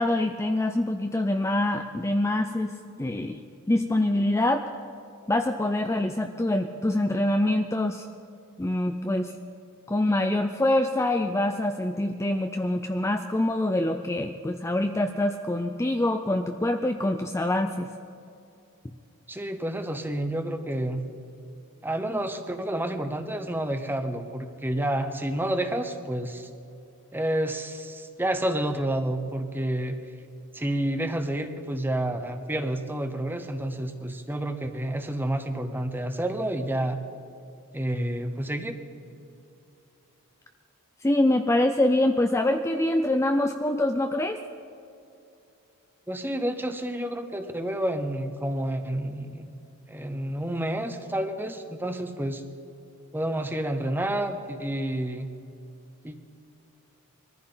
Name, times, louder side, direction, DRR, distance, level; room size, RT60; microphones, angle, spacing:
voice 1, 0.0-3.4 3.7-4.6 5.3-8.1 8.6-9.3 9.9-17.9 41.0-44.4, left 1 dB, 15° left, 6 dB, 0.4 m, -25 dB
voice 2, 19.3-21.1 21.8-26.5 27.1-29.9 30.5-37.0 37.7-38.8 46.1-49.5 49.9-52.4 53.1-55.3 56.0-56.1, right 1 dB, 10° right, 7 dB, 0.8 m, -29 dB
22.0 x 14.5 x 3.9 m, 2.6 s
head